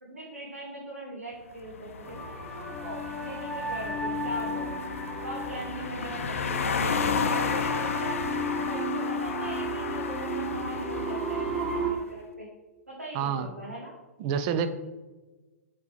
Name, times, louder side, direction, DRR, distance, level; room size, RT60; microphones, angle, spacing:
voice 1, 0.0-4.8 5.2-12.5 12.9-13.9, right 1 dB, 85° right, -5 dB, 1.4 m, -40 dB
sound 1, 1.6-11.9, left 6 dB, 65° left, 0.5 m, -34 dB
sound 2, 2.0-11.9, equal, ahead, 1.4 m, -33 dB
voice 2, 13.1-13.5 14.2-14.7, right 8 dB, 40° right, 10 dB, 0.5 m, -27 dB
7.9 x 3.7 x 3.3 m, 1.2 s
figure-of-eight pair, 110°, 8 cm